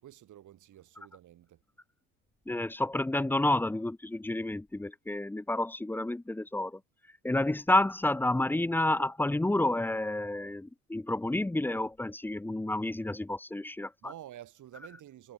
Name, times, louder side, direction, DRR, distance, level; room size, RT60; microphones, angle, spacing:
voice 1, 0.0-1.6 14.0-15.3, right 12 dB, 55° right, 3.5 m, -49 dB
voice 2, 2.5-6.8 7.2-14.1, left 1 dB, 5° left, 0.6 m, -30 dB
hypercardioid pair, 75°, 37 cm